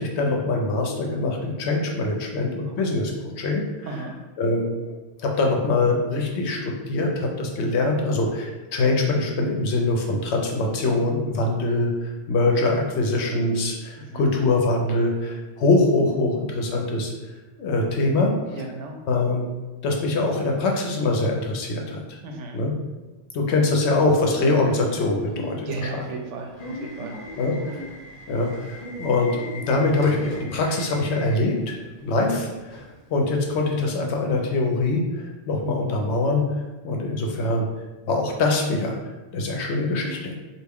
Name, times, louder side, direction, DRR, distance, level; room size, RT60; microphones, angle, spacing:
voice 1, 0.0-3.9 4.4-4.7 5.2-17.1 17.6-18.6 19.1-19.5 19.8-22.0 22.5-22.7 23.3-25.9 27.4-27.8 28.3-29.3 29.7-36.4 36.8-37.7 38.1-39.0 39.3-40.3, left 2 dB, 70° left, 1 dB, 0.9 m, -23 dB
voice 2, 14.0-14.3 18.5-19.0 22.2-22.6 25.7-27.2, right 3 dB, 85° right, 3 dB, 0.9 m, -35 dB
Subway metro underground / Alarm, 23.9-33.7, equal, 45° left, 0.6 m, -38 dB
3.3 x 2.4 x 3.5 m, 1.1 s
omnidirectional pair, 1.2 m